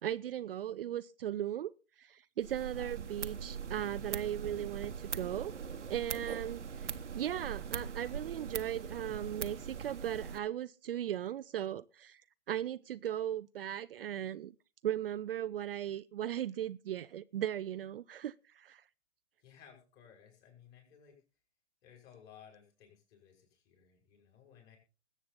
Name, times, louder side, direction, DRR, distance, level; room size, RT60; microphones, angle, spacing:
voice 1, 0.0-1.7 2.0-5.5 5.9-12.2 12.5-14.5 14.8-18.8, right 11 dB, 55° right, 0.5 m, -37 dB
sound 1, 2.4-10.4, right 6 dB, 80° right, 1.2 m, -41 dB
voice 2, 19.4-21.2 21.8-24.8, left 8 dB, 30° left, 5.7 m, -59 dB
20.5 x 8.3 x 4.0 m
figure-of-eight pair, 125°, 35 cm